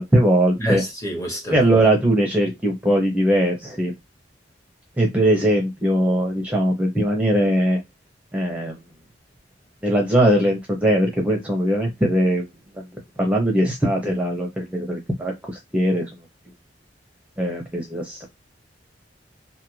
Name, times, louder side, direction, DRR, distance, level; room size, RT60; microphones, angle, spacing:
voice 1, 0.0-0.8 1.5-3.9 5.0-7.8 8.3-8.7 9.8-12.5 13.2-15.3 15.7-16.0 17.4-18.2, right 1 dB, 10° right, 0.6 m, -20 dB
voice 2, 0.6-1.8, right 1 dB, 20° left, 0.9 m, -28 dB
2.6 x 2.4 x 3.1 m
head